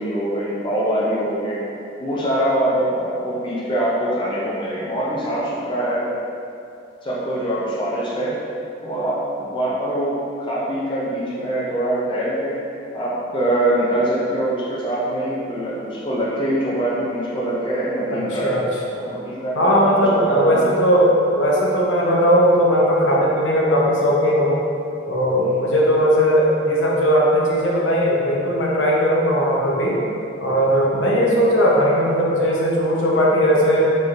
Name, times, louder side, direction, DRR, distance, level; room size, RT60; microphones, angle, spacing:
voice 1, 0.0-1.6 2.0-6.1 7.0-8.4 8.8-12.6 12.9-18.6 19.0-20.7 25.4-25.7 31.1-31.5, right 1 dB, 25° left, -6 dB, 0.4 m, -23 dB
voice 2, 18.1-18.6 18.9-19.0 19.5-24.6 25.1-30.0 30.4-33.8, equal, 70° left, -4 dB, 0.7 m, -18 dB
4.2 x 3.1 x 2.4 m, 2.6 s
head